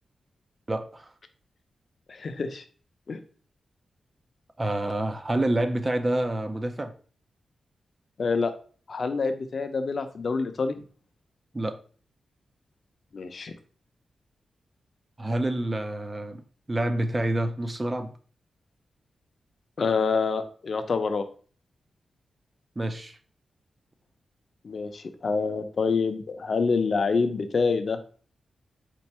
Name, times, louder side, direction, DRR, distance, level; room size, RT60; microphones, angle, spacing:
voice 1, 0.7-1.1 4.6-6.9 11.5-11.8 15.2-16.4 16.7-18.1 22.8-23.2, right 1 dB, 25° right, 7 dB, 0.5 m, -27 dB
voice 2, 2.1-2.6 3.1-3.2 8.2-8.5 8.9-10.8 13.1-13.5 19.8-21.3 24.6-28.0, left 4 dB, 55° left, 8 dB, 0.6 m, -26 dB
4.5 x 2.5 x 4.2 m, 0.42 s
wide cardioid pair, 105°, 0 cm